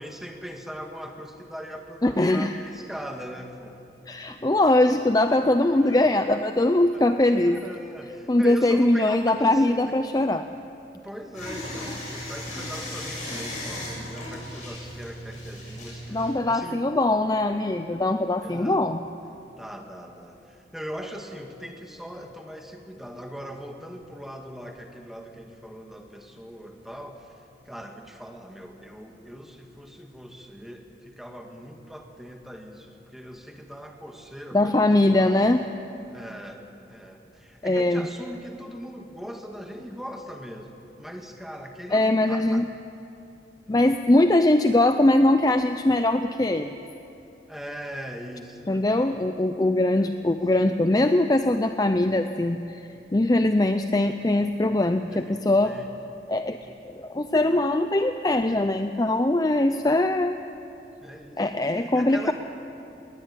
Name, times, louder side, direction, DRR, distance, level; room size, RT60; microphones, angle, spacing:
voice 1, 0.0-3.8 4.3-4.7 5.8-6.1 6.9-7.0 7.4-10.0 10.9-16.8 18.4-18.8 19.6-35.3 36.1-42.6 44.3-44.4 47.5-49.2 49.9-50.4 55.1-55.9 61.0-62.3, equal, ahead, 3 dB, 1.7 m, -40 dB
voice 2, 2.0-2.5 4.1-7.6 8.3-10.5 16.1-19.0 34.5-35.6 37.6-38.1 41.9-42.7 43.7-46.8 48.7-55.7 56.3-56.6 56.8-60.3 61.4-62.3, left 1 dB, 20° left, 8 dB, 0.5 m, -21 dB
sound 1, 11.3-16.3, left 1 dB, 45° left, 7.1 m, -36 dB
20.5 x 19.5 x 8.8 m, 2.7 s
head